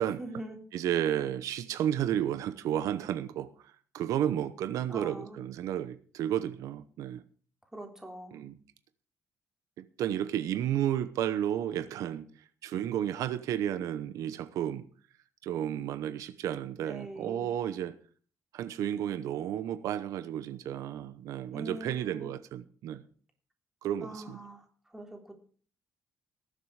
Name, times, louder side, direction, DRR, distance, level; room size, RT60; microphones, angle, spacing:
voice 1, 0.2-0.6 4.9-5.5 7.7-8.4 16.9-17.5 21.5-22.3 24.0-25.3, right 1 dB, 5° right, 3.6 m, -43 dB
voice 2, 0.7-7.2 8.3-8.6 9.8-12.3 12.6-14.8 15.4-18.0 18.5-23.0 23.8-24.4, right 11 dB, 85° right, 0.9 m, -32 dB
19.0 x 7.7 x 4.9 m
cardioid pair, 110°, 6 cm